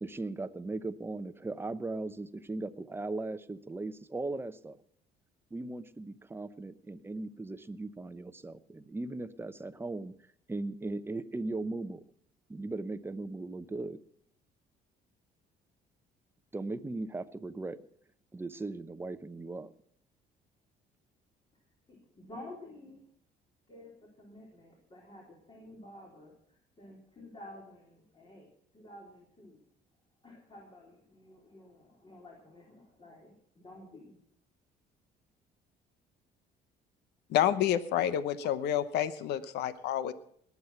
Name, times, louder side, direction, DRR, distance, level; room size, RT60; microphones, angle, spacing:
voice 1, 0.0-4.8 5.5-10.1 10.5-12.0 12.5-14.0 16.5-17.8 18.3-19.7, right 2 dB, 15° right, 12 dB, 0.8 m, -38 dB
voice 2, 21.9-23.0 23.7-28.5 28.7-29.6 30.2-34.2, left 1 dB, 30° left, -2 dB, 3.9 m, -51 dB
voice 3, 37.3-40.1, left 10 dB, 80° left, 14 dB, 0.9 m, -29 dB
20.5 x 8.3 x 5.8 m, 0.67 s
cardioid pair, 110°, 17 cm